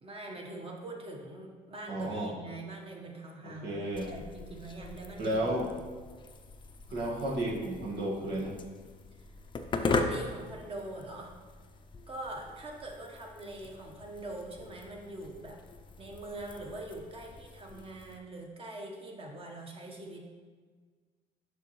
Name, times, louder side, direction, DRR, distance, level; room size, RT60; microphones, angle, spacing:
voice 1, 0.0-5.8 9.8-11.3 12.1-15.6 16.0-20.3, right 2 dB, 35° right, 0 dB, 1.2 m, -43 dB
voice 2, 1.9-2.3 3.4-4.1 5.2-5.7 6.9-8.5, right 1 dB, 80° right, -4 dB, 1.8 m, -32 dB
sound 1, 3.9-18.2, left 3 dB, 30° left, 0.5 m, -40 dB
6.9 x 5.8 x 3.1 m, 1.5 s
cardioid pair, 110°, 17 cm